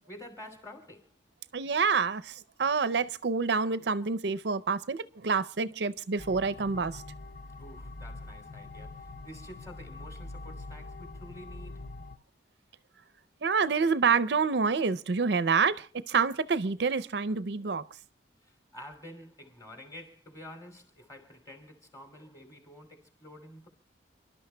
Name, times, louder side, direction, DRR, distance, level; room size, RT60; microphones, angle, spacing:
voice 1, 0.1-1.1 7.6-11.8 18.4-23.7, left 1 dB, 20° left, 2.8 m, -49 dB
voice 2, 1.5-7.0 13.4-17.9, right 5 dB, 60° right, 0.5 m, -27 dB
sound 1, 6.2-12.2, left 2 dB, 45° left, 0.6 m, -44 dB
30.0 x 12.0 x 2.2 m
head